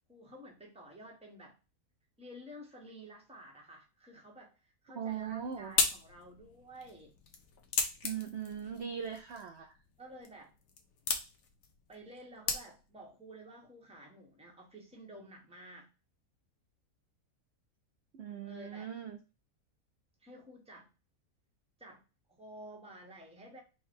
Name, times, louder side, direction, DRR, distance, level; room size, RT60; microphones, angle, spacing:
voice 1, 0.1-1.5 2.2-7.1 10.0-10.5 11.9-15.9 18.4-18.9 20.2-20.9 21.8-22.0 22.3-23.6, right 1 dB, 5° right, -1 dB, 0.9 m, -52 dB
voice 2, 4.9-5.7 8.0-9.8 18.1-19.2, right 8 dB, 60° right, 4 dB, 0.7 m, -40 dB
sound 1, 5.1-13.1, left 5 dB, 70° left, 1.2 m, -38 dB
4.6 x 2.3 x 4.5 m, 0.30 s
omnidirectional pair, 1.6 m